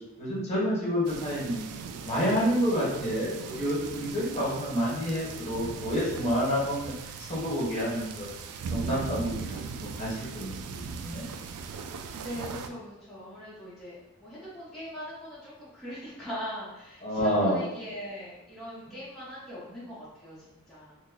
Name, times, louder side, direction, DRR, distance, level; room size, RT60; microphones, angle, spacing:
voice 1, 0.2-1.6 2.0-8.3 8.7-10.7 11.0-11.3 17.0-17.6, equal, 30° left, -6 dB, 1.1 m, -29 dB
sound 1, 1.0-12.7, right 5 dB, 80° right, 0.3 m, -39 dB
voice 2, 12.2-21.0, equal, ahead, -11 dB, 0.7 m, -41 dB
3.0 x 2.1 x 3.8 m, 0.90 s
head